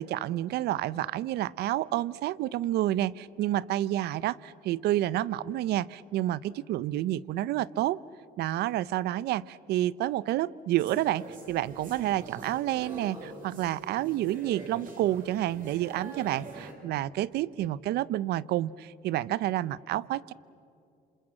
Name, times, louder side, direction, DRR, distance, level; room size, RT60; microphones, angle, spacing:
voice 1, 0.0-8.0 8.4-20.3, right 14 dB, 75° right, 20 dB, 0.6 m, -29 dB
sound 1, 10.8-16.7, right 2 dB, 55° right, 5.0 m, -45 dB
27.5 x 26.5 x 7.6 m, 2.6 s
cardioid pair, 110°, 17 cm